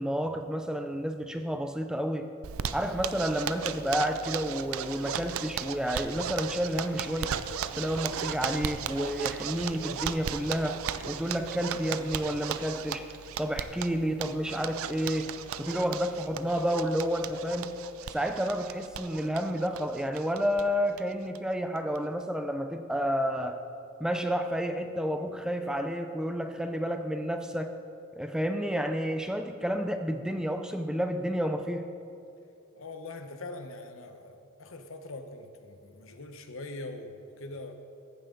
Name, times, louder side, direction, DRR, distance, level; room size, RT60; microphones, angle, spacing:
voice 1, 0.0-2.3 2.7-7.3 7.7-13.1 13.4-15.3 15.6-17.7 18.1-23.6 24.0-27.7 28.2-31.9, equal, 5° right, 7 dB, 0.3 m, -30 dB
Zipper (clothing), 2.4-20.6 20.9-21.0 21.3-21.4 21.8-22.2, right 8 dB, 80° right, 0.4 m, -36 dB
voice 2, 32.7-37.8, left 2 dB, 70° left, 7 dB, 0.9 m, -42 dB
15.0 x 9.1 x 3.8 m, 2.6 s
head